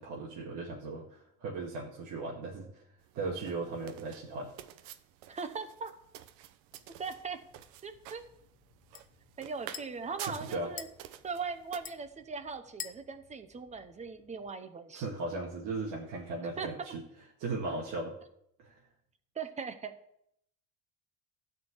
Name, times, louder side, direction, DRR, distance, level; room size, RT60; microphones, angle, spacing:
voice 1, 0.0-2.8 3.1-4.5 10.3-10.7 14.9-17.0 17.4-18.1 18.6-18.8, right 3 dB, 60° right, -3 dB, 2.0 m, -37 dB
sound 1, 3.0-11.8, right 11 dB, 80° right, 0.9 m, -50 dB
voice 2, 5.3-5.9 7.0-7.4 7.8-8.2 9.4-10.9 11.2-15.1 16.6-16.9 19.3-20.0, right 5 dB, 20° right, 9 dB, 0.9 m, -39 dB
sound 2, 6.7-14.5, left 7 dB, 25° left, 0.5 m, -51 dB
13.0 x 4.7 x 8.2 m, 0.74 s
cardioid pair, 150°, 34 cm